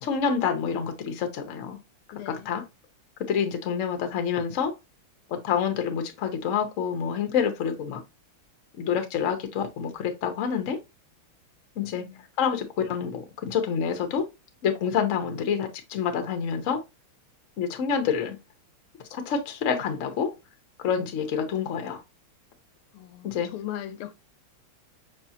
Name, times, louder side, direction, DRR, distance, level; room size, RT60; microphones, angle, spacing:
voice 1, 0.0-1.8 2.3-2.6 3.3-4.7 5.3-8.0 8.8-10.8 11.8-12.0 12.4-14.3 14.6-16.8 17.6-18.4 19.1-20.3 20.8-22.0 23.2-23.5, left 7 dB, 60° left, 0.8 m, -27 dB
voice 2, 2.1-2.5 11.8-12.2 22.9-24.1, left 12 dB, 80° left, 1.5 m, -39 dB
5.6 x 3.4 x 2.7 m
omnidirectional pair, 2.4 m